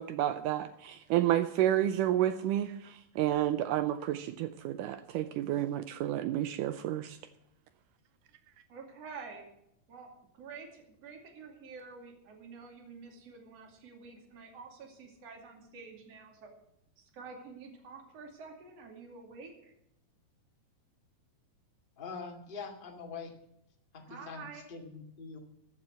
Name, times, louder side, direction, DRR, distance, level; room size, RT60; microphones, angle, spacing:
voice 1, 0.0-7.2, right 12 dB, 80° right, 11 dB, 2.1 m, -30 dB
voice 2, 8.7-9.4 9.9-10.1 10.3-16.5 17.0-19.7 24.1-24.6, right 4 dB, 50° right, 1 dB, 3.4 m, -48 dB
voice 3, 22.0-23.3 23.9-25.4, left 5 dB, 20° left, 1 dB, 1.6 m, -44 dB
14.0 x 7.4 x 7.6 m, 0.78 s
omnidirectional pair, 3.9 m